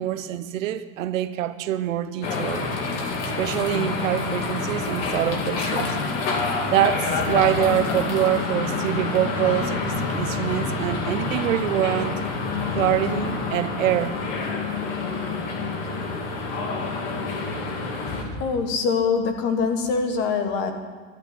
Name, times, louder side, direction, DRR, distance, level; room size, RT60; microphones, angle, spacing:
voice 1, 0.0-2.7 3.4-6.0 6.7-12.2 12.7-14.2, right 12 dB, 85° right, 1.0 m, -25 dB
sound 1, 2.2-18.2, left 4 dB, 45° left, 2.2 m, -27 dB
sound 2, 7.1-13.5, left 6 dB, 80° left, 1.6 m, -35 dB
voice 2, 18.1-20.7, left 5 dB, 30° left, 1.3 m, -24 dB
12.5 x 8.0 x 9.8 m
supercardioid pair, 165°, 38 cm